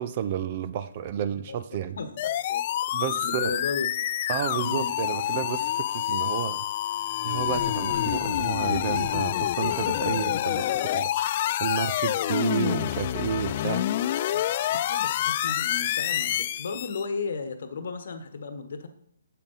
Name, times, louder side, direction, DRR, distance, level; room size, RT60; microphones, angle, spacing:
voice 1, 0.0-2.0 2.9-3.6 4.3-6.6 7.2-10.6 10.9-11.1 11.6-13.8, right 9 dB, 35° right, 12 dB, 0.6 m, -31 dB
voice 2, 2.0-2.6 3.1-3.9 4.6-4.9 7.8-8.1 14.1-14.4 14.7-18.9, left 4 dB, 55° left, 9 dB, 1.1 m, -35 dB
sound 1, 2.2-17.0, left 12 dB, 40° left, 0.3 m, -27 dB
8.8 x 7.6 x 4.0 m, 0.70 s
figure-of-eight pair, 135°, 0 cm